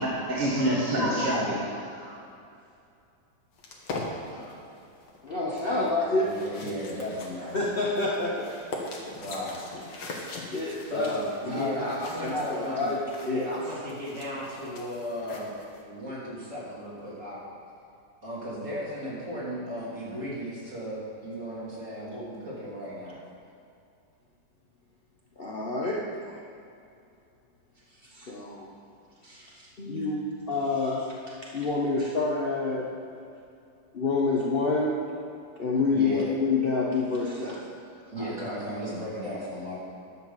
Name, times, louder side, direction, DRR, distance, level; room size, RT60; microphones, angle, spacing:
voice 1, 0.0-2.2, equal, 25° right, -6 dB, 1.8 m, -27 dB
sound 1, 3.6-15.8, left 2 dB, 85° left, 2.0 m, -42 dB
voice 2, 4.2-4.6 5.6-5.9 6.2-7.6 9.0-9.6 10.9-12.9 13.2-15.5 15.8-17.4 18.2-23.2 35.9-36.3 38.1-39.8, equal, 45° right, -8 dB, 3.5 m, -35 dB
voice 3, 5.2-6.4 7.5-8.5 10.5-11.8 12.2-13.0 13.3-13.5 25.4-26.4 28.1-28.7 29.2-33.0 33.9-35.0 35.6-37.8 38.2-38.3, left 3 dB, 40° left, -4 dB, 0.9 m, -28 dB
11.0 x 5.9 x 7.2 m, 2.5 s
omnidirectional pair, 1.9 m